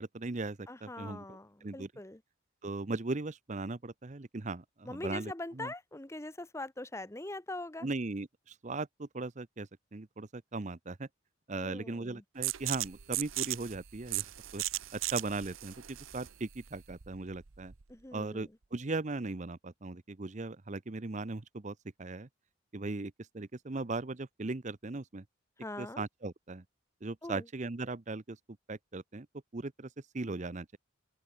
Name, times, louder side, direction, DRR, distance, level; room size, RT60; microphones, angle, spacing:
voice 1, 0.0-1.9 2.6-5.7 7.8-11.1 11.5-14.6 14.9-17.7 18.1-22.3 22.7-25.2 25.8-26.6 27.0-28.4 28.7-29.3 29.5-29.9 30.1-30.8, right 3 dB, 35° right, 0.7 m, -38 dB
voice 2, 0.7-2.2 4.8-7.9 11.5-12.2 17.9-18.5 25.6-26.0 27.2-27.5, left 2 dB, 15° left, 1.0 m, -42 dB
sound 1, 12.4-17.9, right 16 dB, 90° right, 0.9 m, -37 dB
open air
head